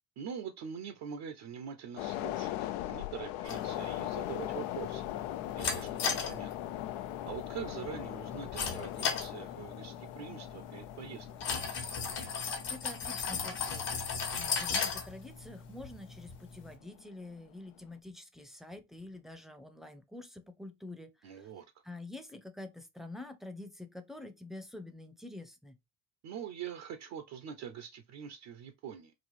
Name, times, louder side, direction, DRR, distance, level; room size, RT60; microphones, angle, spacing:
voice 1, 0.2-5.1 5.5-6.5 7.3-11.3 21.2-21.6 26.2-29.1, right 8 dB, 55° right, 0.7 m, -44 dB
sound 1, 2.0-16.5 16.9-17.0, left 14 dB, 70° left, 0.6 m, -40 dB
sound 2, 3.4-16.7, left 5 dB, 55° left, 1.2 m, -38 dB
voice 2, 12.7-21.5 21.8-25.8, left 2 dB, ahead, 0.6 m, -47 dB
4.0 x 2.4 x 3.2 m
hypercardioid pair, 65°, 50 cm